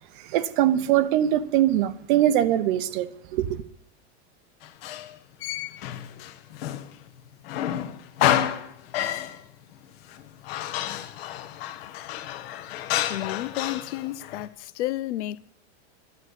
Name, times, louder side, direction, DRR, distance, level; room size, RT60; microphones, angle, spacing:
voice 1, 0.2-3.6, right 12 dB, 45° right, 0.8 m, -22 dB
Male speech man speaking, 4.6-7.1 7.4-9.4 10.1-14.5, left 12 dB, 60° left, 1.3 m, -30 dB
voice 2, 13.1-15.4, left 14 dB, 80° left, 0.8 m, -31 dB
11.0 x 9.8 x 8.2 m
supercardioid pair, 175°, 34 cm